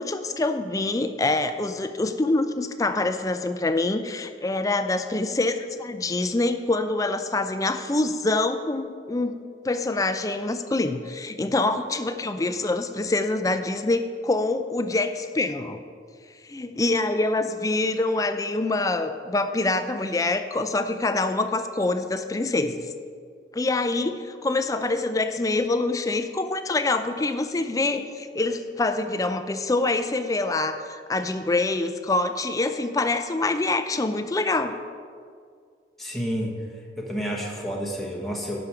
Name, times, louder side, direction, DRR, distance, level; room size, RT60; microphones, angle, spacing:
voice 1, 0.0-9.4 9.6-15.8 16.5-22.8 23.5-34.8, left 2 dB, 20° left, 9 dB, 0.4 m, -25 dB
voice 2, 36.0-36.5 37.0-38.6, equal, ahead, -3 dB, 1.2 m, -30 dB
10.5 x 5.1 x 5.9 m, 2.1 s
head